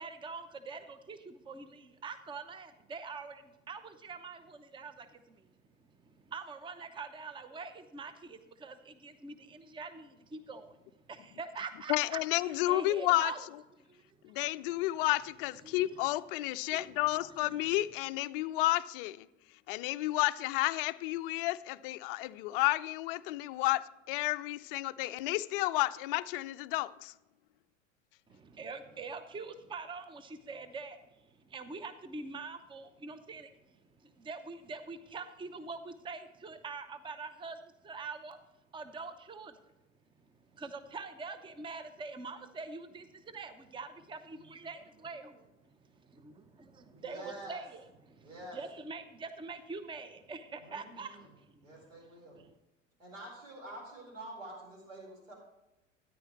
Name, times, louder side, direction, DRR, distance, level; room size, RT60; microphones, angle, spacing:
voice 1, 0.0-5.5 6.0-10.8 11.1-13.5 13.8-14.0 15.6-16.1 16.7-17.1 17.4-17.8 28.3-38.4 38.7-39.7 40.5-45.3 45.7-45.9 46.2-46.3 46.8-51.7 52.3-52.5, right 4 dB, 10° right, 0.8 m, -44 dB
voice 2, 11.9-13.3 14.2-19.3 19.7-27.1, left 17 dB, 45° left, 0.5 m, -31 dB
voice 3, 46.9-47.6 48.2-48.6 50.6-51.3 51.6-52.4 53.0-55.3, right 1 dB, 75° right, 4.6 m, -47 dB
13.5 x 10.0 x 3.1 m
figure-of-eight pair, 80°, 39 cm